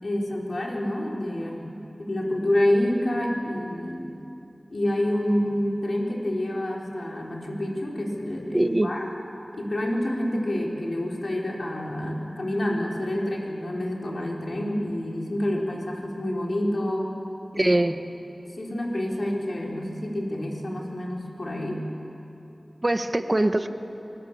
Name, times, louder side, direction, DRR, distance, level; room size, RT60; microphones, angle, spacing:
voice 1, 0.0-4.1 4.7-9.1 9.5-17.1 17.5-17.7 18.5-21.8, left 1 dB, 65° left, -2 dB, 3.9 m, -28 dB
voice 2, 8.5-8.9 17.5-18.0 22.8-23.7, right 1 dB, 35° right, 8 dB, 1.2 m, -22 dB
25.0 x 23.0 x 7.3 m, 2.9 s
wide cardioid pair, 65°, 0 cm